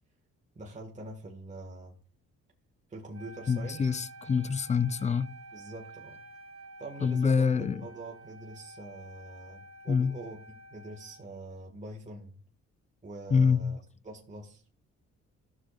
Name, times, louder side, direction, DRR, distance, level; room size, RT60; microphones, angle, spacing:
voice 1, 0.5-1.9 2.9-3.9 5.5-6.2 6.8-7.5 7.8-10.4 10.7-12.4 13.0-13.8 14.0-14.6, right 2 dB, 25° right, 1.7 m, -44 dB
Wind instrument woodwind instrument, 3.1-11.4, right 2 dB, 50° right, 1.2 m, -50 dB
voice 2, 3.5-5.4 7.0-7.9 9.9-10.2 13.3-13.8, left 6 dB, 25° left, 0.4 m, -26 dB
13.5 x 6.6 x 2.4 m
cardioid pair, 90°, 30 cm